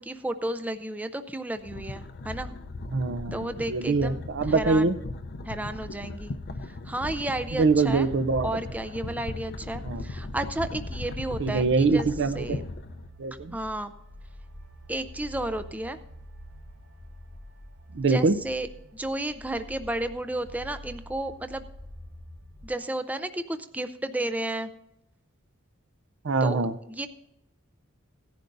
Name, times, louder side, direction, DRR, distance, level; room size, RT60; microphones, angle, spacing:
voice 1, 0.0-2.5 3.3-4.2 4.5-4.9 5.4-6.3 6.6-8.1 8.4-12.1 12.4-12.6 13.5-13.9 14.9-16.0 18.0-18.7 18.9-21.7 22.6-24.7 26.4-26.6 26.9-27.1, right 1 dB, 5° right, 9 dB, 0.5 m, -32 dB
sound 1, 1.5-13.1, left 2 dB, 50° left, 0.6 m, -38 dB
voice 2, 2.9-5.0 7.5-8.5 9.8-10.0 11.4-12.6 13.2-13.6 17.9-18.3 26.2-26.7, right 4 dB, 60° right, 13 dB, 0.6 m, -24 dB
sound 2, 7.5-22.7, equal, 80° right, 1.7 m, -47 dB
17.0 x 10.5 x 2.6 m, 0.86 s
head